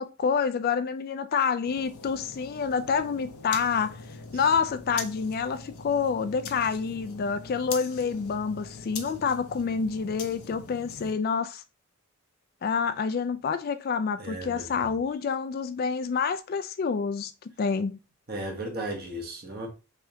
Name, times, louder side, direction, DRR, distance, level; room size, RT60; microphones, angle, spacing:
voice 1, 0.0-4.0 4.3-11.6 12.6-17.3 17.6-18.0, left 5 dB, 45° left, 0.3 m, -28 dB
sound 1, 1.6-11.1, left 5 dB, 80° left, 0.7 m, -42 dB
voice 2, 14.2-15.0 18.3-19.7, right 1 dB, 45° right, 1.0 m, -36 dB
3.5 x 3.4 x 2.7 m
head